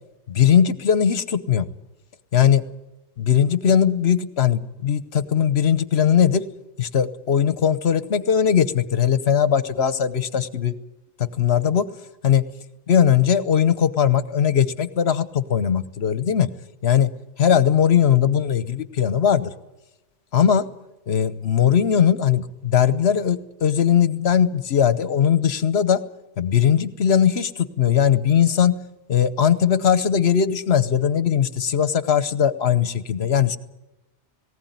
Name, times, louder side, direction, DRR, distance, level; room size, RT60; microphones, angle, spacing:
voice 1, 0.3-1.7 2.3-2.6 3.2-6.4 6.8-10.7 11.2-11.9 12.2-12.4 12.9-16.5 16.8-17.1 17.4-19.5 20.3-20.7 21.1-26.0 26.4-28.8 29.1-33.6, left 8 dB, 65° left, 14 dB, 1.2 m, -19 dB
19.0 x 18.0 x 9.4 m, 0.97 s
omnidirectional pair, 1.2 m